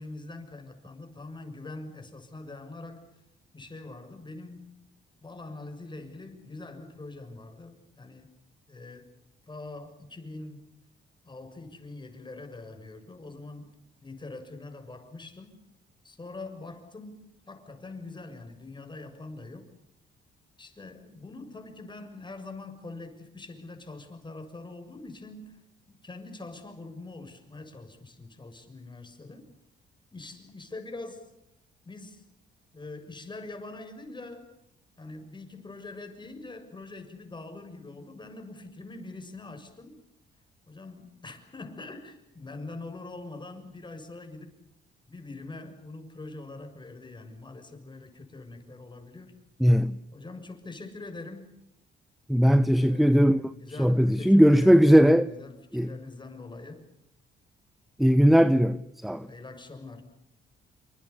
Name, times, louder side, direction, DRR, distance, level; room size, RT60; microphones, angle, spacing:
voice 1, 0.0-3.1 3.5-4.7 5.2-8.3 8.7-9.2 9.5-10.7 11.2-13.7 14.0-15.6 16.0-19.7 20.6-25.6 26.0-29.4 30.1-31.2 31.8-32.2 32.7-34.5 35.0-40.0 40.7-44.6 45.1-49.4 50.1-51.5 52.8-56.9 59.2-60.0, left 2 dB, 25° left, 6.7 m, -43 dB
voice 2, 49.6-50.0 52.3-53.5 53.8-55.3 55.7-55.9 58.0-59.3, equal, ahead, 1.0 m, -19 dB
28.0 x 25.0 x 7.0 m
cardioid pair, 90°, 20 cm